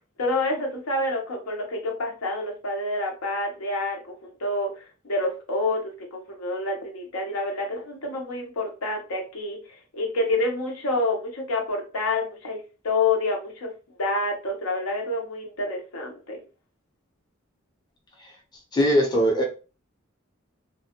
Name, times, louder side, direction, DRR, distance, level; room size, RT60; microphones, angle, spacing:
voice 1, 0.2-4.7 5.0-5.8 6.1-9.6 9.9-13.7 14.0-16.4, left 2 dB, 80° left, 1 dB, 0.8 m, -28 dB
voice 2, 18.7-19.4, equal, 20° left, -1 dB, 0.6 m, -20 dB
2.3 x 2.1 x 2.8 m, 0.34 s
head